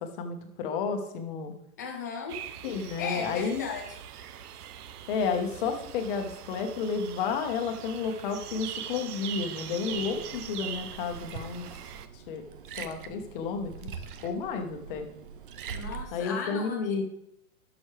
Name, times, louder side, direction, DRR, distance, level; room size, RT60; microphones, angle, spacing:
voice 1, 0.0-1.5 2.6-3.6 5.1-11.7 12.1-12.4 12.8-13.9 14.2-15.1 16.1-17.0, left 5 dB, 35° left, 5 dB, 1.2 m, -31 dB
voice 2, 1.8-2.4 2.8-3.8 15.7-16.8, left 5 dB, 15° left, 1 dB, 0.4 m, -36 dB
sound 1, 2.3-12.1, right 9 dB, 85° right, 0.8 m, -42 dB
Liquid, 9.9-16.0, right 7 dB, 40° right, 0.5 m, -43 dB
12.5 x 6.3 x 3.3 m, 0.78 s
supercardioid pair, 165°, 44 cm